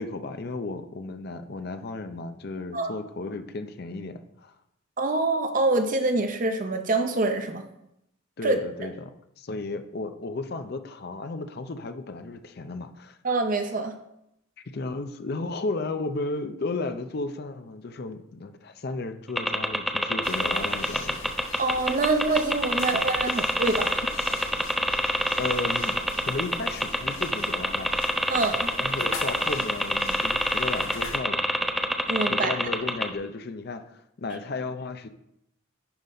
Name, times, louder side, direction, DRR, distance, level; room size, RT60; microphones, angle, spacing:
voice 1, 0.0-4.6 8.4-13.2 14.6-21.3 25.4-26.0 26.3-27.9 28.8-31.4 32.3-35.1, left 3 dB, 50° left, 9 dB, 0.5 m, -34 dB
voice 2, 5.0-7.6 8.4-8.6 13.2-14.0 21.6-23.9 28.3-28.7 32.1-32.5, right 3 dB, 40° right, 6 dB, 0.6 m, -25 dB
sound 1, 19.4-33.1, equal, ahead, 0.4 m, -25 dB
sound 2, 20.2-31.2, left 3 dB, 75° left, 1.3 m, -41 dB
10.5 x 4.0 x 4.2 m, 0.80 s
head